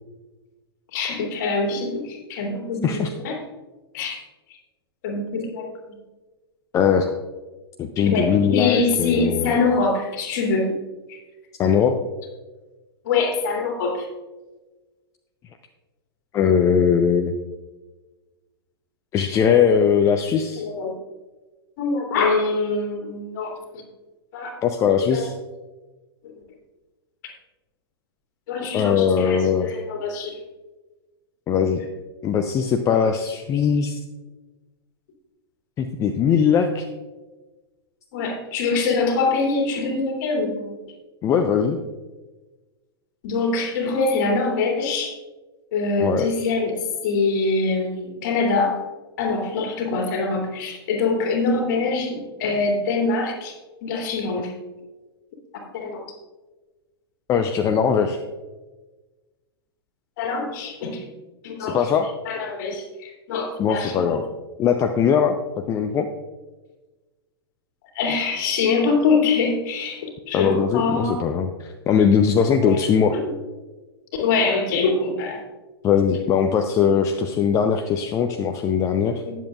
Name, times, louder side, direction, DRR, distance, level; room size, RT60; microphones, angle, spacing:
voice 1, 0.9-3.4 3.9-4.2 5.0-5.7 8.0-10.8 11.1-11.2 13.0-14.1 20.6-20.9 21.8-23.6 24.3-24.6 25.1-25.2 28.5-30.4 38.1-40.7 43.2-45.1 45.7-48.8 49.2-53.5 53.8-54.5 55.7-56.0 60.2-61.0 61.4-61.8 62.2-64.2 67.9-71.2 72.6-72.8 73.1-73.2 74.2-75.4 79.2-79.4, left 4 dB, 45° left, 1 dB, 2.6 m, -24 dB
voice 2, 6.7-7.1 7.8-9.5 11.6-12.0 16.3-17.3 19.1-20.6 24.6-25.3 28.7-29.7 31.5-31.8 32.2-34.0 35.8-36.9 41.2-41.8 46.0-46.3 57.3-58.2 61.6-62.1 63.6-64.3 64.6-65.4 65.7-66.1 70.3-73.2 75.8-79.2, left 7 dB, 25° left, 6 dB, 0.6 m, -20 dB
19.0 x 7.4 x 2.4 m, 1.2 s
figure-of-eight pair, 100°, 13 cm